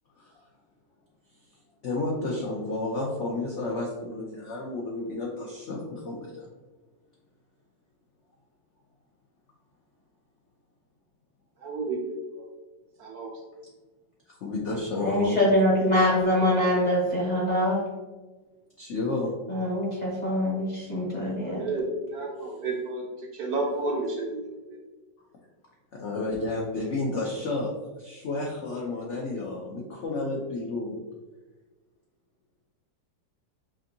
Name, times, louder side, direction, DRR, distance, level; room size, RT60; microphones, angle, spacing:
voice 1, 1.8-6.5 14.3-15.4 18.8-19.3 25.9-27.7 28.0-31.0, left 2 dB, 85° left, -2 dB, 0.6 m, -31 dB
voice 2, 11.6-12.5 13.0-13.3 21.4-23.0 23.3-24.8, right 2 dB, 70° right, 0 dB, 1.0 m, -31 dB
voice 3, 15.0-17.8 19.5-21.6, left 1 dB, 35° left, -6 dB, 0.7 m, -24 dB
5.1 x 2.6 x 2.6 m, 1.2 s
omnidirectional pair, 1.9 m